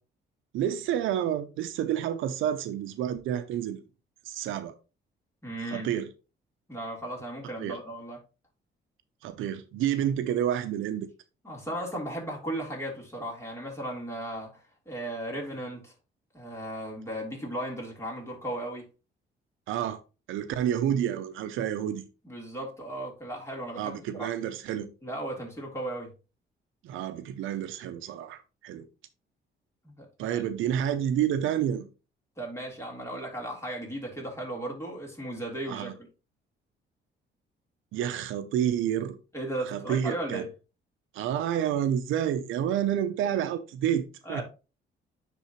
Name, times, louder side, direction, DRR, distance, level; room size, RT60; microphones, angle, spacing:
voice 1, 0.5-3.8 4.3-4.7 5.7-6.1 7.6-7.8 9.2-11.1 19.7-20.0 20.3-22.0 23.8-24.9 26.8-28.9 30.2-31.9 35.7-35.9 37.9-39.1 39.7-40.4 41.1-44.4, right 10 dB, 90° right, 0.7 m, -29 dB
voice 2, 5.4-5.9 6.7-8.2 11.4-15.9 16.3-18.9 22.2-24.3 25.0-26.1 29.8-30.4 32.4-36.0 39.3-40.5 44.3-44.4, right 1 dB, 15° left, 3.5 m, -36 dB
9.9 x 3.8 x 3.0 m
cardioid pair, 90°, 20 cm